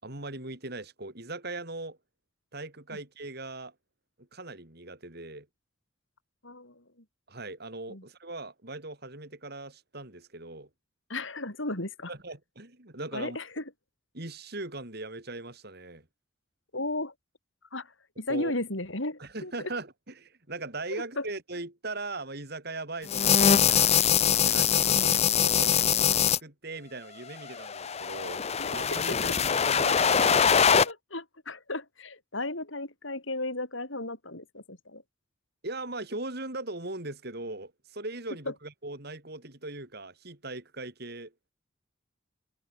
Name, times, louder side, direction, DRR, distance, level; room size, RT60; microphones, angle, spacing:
voice 1, 0.0-2.0 2.5-3.7 4.2-5.5 7.3-10.7 12.1-13.4 14.1-16.1 18.3-18.5 19.2-24.0 24.4-30.6 35.6-41.5, right 2 dB, 50° right, 4.2 m, -39 dB
voice 2, 6.4-7.0 7.9-8.0 11.1-12.1 13.1-13.7 16.7-17.1 17.7-19.7 20.9-21.3 24.9-25.2 28.6-29.3 30.8-35.0 38.5-38.6, left 2 dB, 70° left, 6.3 m, -35 dB
sound 1, 23.1-26.4 27.5-30.9, left 7 dB, 30° left, 0.6 m, -23 dB
head